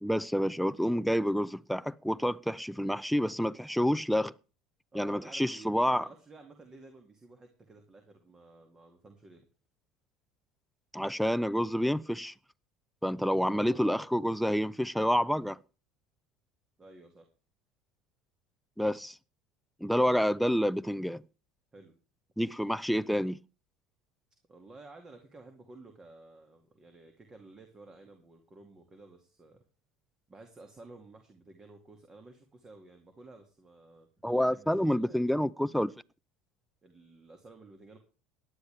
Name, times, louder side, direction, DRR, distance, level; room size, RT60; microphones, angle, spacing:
voice 1, 0.0-4.3 4.9-6.1 10.9-12.3 13.0-15.6 18.8-19.2 19.8-21.2 22.4-23.4 34.2-35.9, equal, ahead, 0.5 m, -28 dB
voice 2, 4.9-9.4 13.5-14.1 16.8-17.3 21.7-21.9 24.5-29.6 30.3-34.1 34.4-35.3 36.8-38.0, right 2 dB, 25° right, 2.4 m, -53 dB
17.5 x 10.5 x 3.5 m
hypercardioid pair, 80°, 3 cm